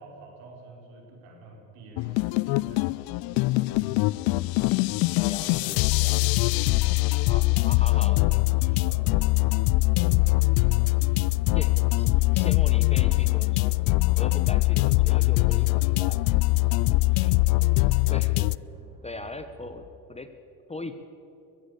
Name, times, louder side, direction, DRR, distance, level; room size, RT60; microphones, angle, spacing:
voice 1, 0.0-2.9 4.4-5.3 7.0-8.1 8.6-9.5 10.0-11.3 11.9-12.6 17.5-18.0, right 2 dB, 65° right, 1 dB, 5.5 m, -49 dB
sound 1, 1.9-19.9, right 1 dB, 10° right, 2.9 m, -50 dB
sound 2, 2.0-18.6, left 21 dB, 50° left, 0.4 m, -22 dB
voice 2, 5.2-6.7 7.3-8.5 9.1-9.2 11.5-11.7 12.0-12.1 12.3-13.8 14.2-16.2 16.7-17.4 17.8-18.5 19.0-19.8 20.1-20.3 20.7-21.0, left 2 dB, 15° left, 9 dB, 1.1 m, -40 dB
22.0 x 15.0 x 8.5 m, 2.9 s
hypercardioid pair, 85°, 49 cm